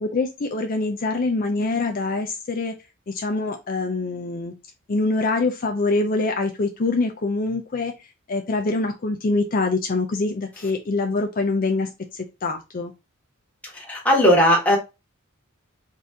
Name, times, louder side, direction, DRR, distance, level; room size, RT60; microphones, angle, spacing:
voice 1, 0.0-2.7 3.1-4.5 4.9-7.9 8.3-12.9, left 3 dB, 40° left, 4 dB, 0.5 m, -24 dB
voice 2, 13.6-14.8, equal, 5° left, -3 dB, 1.4 m, -18 dB
4.0 x 2.6 x 3.5 m, 0.25 s
head